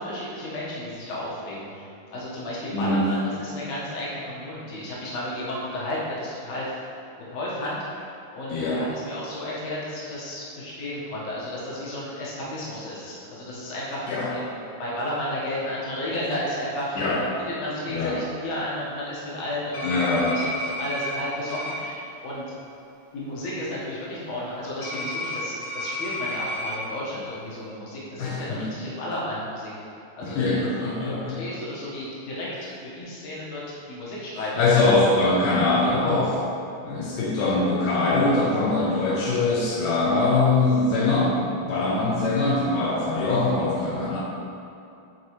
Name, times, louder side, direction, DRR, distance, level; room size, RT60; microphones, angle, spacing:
voice 1, 0.0-6.8 7.2-8.1 8.3-14.5 14.8-17.3 17.6-22.4 23.1-29.8 30.2-34.6 37.1-37.3 38.7-38.9 41.7-42.0, left 1 dB, 60° left, -7 dB, 2.5 m, -33 dB
voice 2, 2.7-3.1 8.5-8.8 14.1-14.4 17.0-17.2 17.9-18.2 19.8-20.4 28.2-28.7 30.2-31.4 34.6-36.4 36.8-41.4 41.6-44.2, left 3 dB, 80° left, -6 dB, 2.3 m, -22 dB
sound 1, 19.7-21.2 21.5-21.7 24.8-26.8, left 1 dB, 45° left, 1.6 m, -31 dB
9.4 x 4.5 x 3.2 m, 2.7 s
omnidirectional pair, 3.6 m